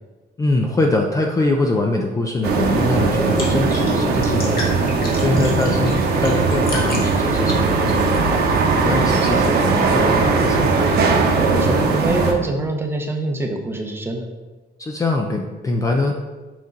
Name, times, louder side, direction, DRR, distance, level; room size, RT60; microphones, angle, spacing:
voice 1, 0.4-4.8 5.1-8.4 8.8-10.8 14.8-16.1, left 2 dB, 20° left, 2 dB, 0.5 m, -23 dB
sound 1, 2.4-12.3, right 4 dB, 65° right, 1.1 m, -19 dB
sound 2, 2.8-8.7, left 2 dB, 55° left, 1.8 m, -33 dB
voice 2, 11.5-14.3, right 2 dB, 15° right, 3 dB, 0.8 m, -24 dB
7.7 x 5.3 x 3.9 m, 1.2 s
cardioid pair, 160°, 18 cm